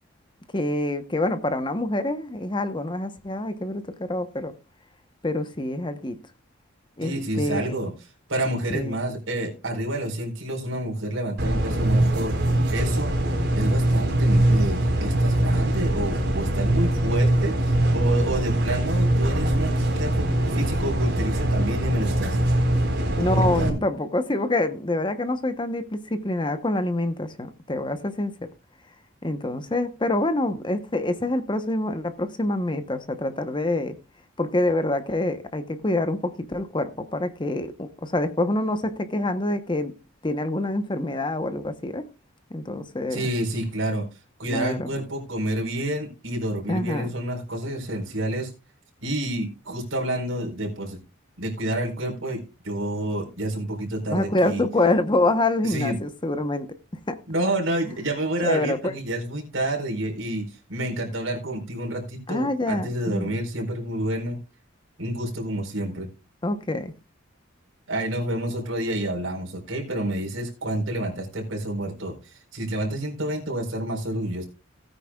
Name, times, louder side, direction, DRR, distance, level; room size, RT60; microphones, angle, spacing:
voice 1, 0.5-4.5 5.2-6.2 7.0-7.7 8.7-8.9 23.2-28.3 29.2-33.9 34.4-39.9 40.2-42.0 42.5-43.2 44.5-44.9 46.7-47.1 54.1-56.7 57.1-57.2 58.4-58.9 62.3-63.4 66.4-66.9, left 2 dB, 25° left, 0.9 m, -26 dB
voice 2, 7.0-7.9 8.3-12.3 12.7-13.1 13.6-22.4 23.2-23.8 43.1-44.0 44.4-48.5 49.0-51.0 51.4-54.6 55.6-56.0 57.3-64.4 65.0-66.1 67.9-74.5, right 1 dB, 75° right, 4.3 m, -29 dB
sound 1, 11.4-23.7, right 1 dB, 55° right, 4.1 m, -22 dB
17.0 x 9.6 x 2.4 m
head